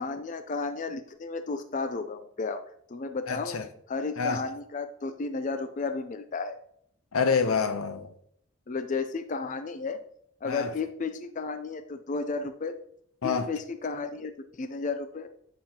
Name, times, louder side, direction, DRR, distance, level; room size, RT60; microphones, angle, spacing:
voice 1, 0.0-2.6 2.9-3.6 3.9-6.6 8.7-10.0 10.4-12.7 13.2-14.3 14.6-15.3, left 4 dB, 35° left, 0.4 m, -33 dB
voice 2, 3.3-3.7 4.2-4.4 7.1-8.1 10.5-10.7 13.2-13.5, left 5 dB, 85° left, 0.7 m, -27 dB
8.8 x 5.6 x 2.9 m
head